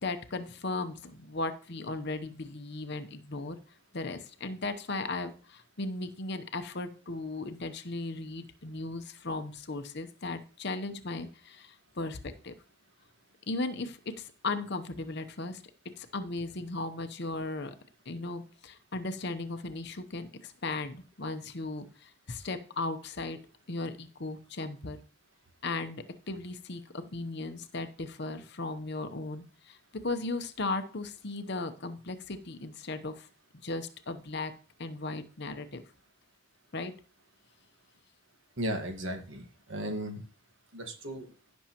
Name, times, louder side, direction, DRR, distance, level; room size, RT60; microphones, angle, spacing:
voice 1, 0.0-3.6 3.9-12.5 13.5-17.7 18.1-23.4 23.7-25.0 25.6-33.3 33.6-34.5 34.8-35.8 36.7-36.9, left 2 dB, 50° left, 9 dB, 0.8 m, -36 dB
voice 2, 38.6-40.2 40.7-41.3, right 1 dB, 60° right, 5 dB, 1.5 m, -35 dB
16.0 x 6.3 x 3.0 m, 0.39 s
head